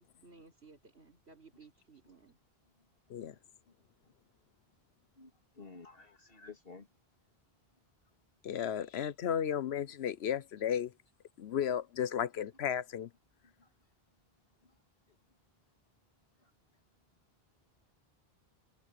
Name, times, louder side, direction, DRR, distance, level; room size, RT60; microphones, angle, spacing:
voice 1, 0.0-2.4, right 4 dB, 90° right, 4.6 m, -58 dB
voice 2, 5.2-6.9 13.4-13.7 14.6-14.7 16.4-16.5, left 4 dB, 65° left, 2.8 m, -53 dB
voice 3, 8.4-10.9 11.4-13.1, left 9 dB, 85° left, 1.0 m, -34 dB
omnidirectional pair, 1.1 m